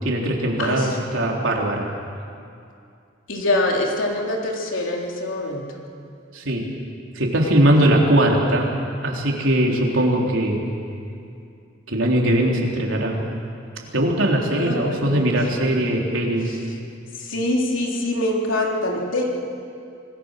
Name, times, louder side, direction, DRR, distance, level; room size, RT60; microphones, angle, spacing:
voice 1, 0.0-1.9 6.3-6.7 7.1-8.7 9.0-10.6 11.9-13.2 13.9-16.5, right 1 dB, 90° right, -1 dB, 3.7 m, -20 dB
voice 2, 0.6-1.4 3.3-5.6 14.5-15.8 17.2-19.3, left 1 dB, 80° left, -1 dB, 3.6 m, -25 dB
26.0 x 20.0 x 6.6 m, 2.5 s
head